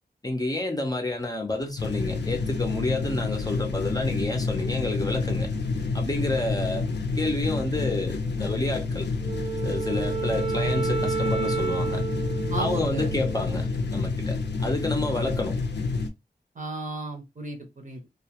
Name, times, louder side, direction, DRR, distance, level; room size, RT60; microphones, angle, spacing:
voice 1, 0.2-5.5 5.9-6.8 7.2-9.1 9.6-12.0 12.6-15.6, left 2 dB, 20° left, 0.5 m, -29 dB
sound 1, 1.8-16.1, left 4 dB, 85° left, 0.5 m, -29 dB
Wind instrument woodwind instrument, 9.2-13.7, right 6 dB, 30° right, 0.3 m, -31 dB
voice 2, 12.5-13.2 16.6-18.0, right 2 dB, 50° right, 0.7 m, -34 dB
2.2 x 2.2 x 2.8 m
wide cardioid pair, 95°, 17 cm